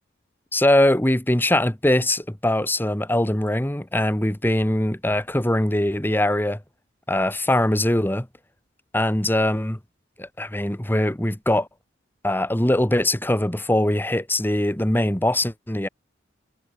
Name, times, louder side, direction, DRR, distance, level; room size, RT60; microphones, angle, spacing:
voice 1, 0.5-6.6 7.1-8.3 8.9-9.8 10.2-11.7 12.2-15.9, left 1 dB, 10° left, 1.3 m, -22 dB
head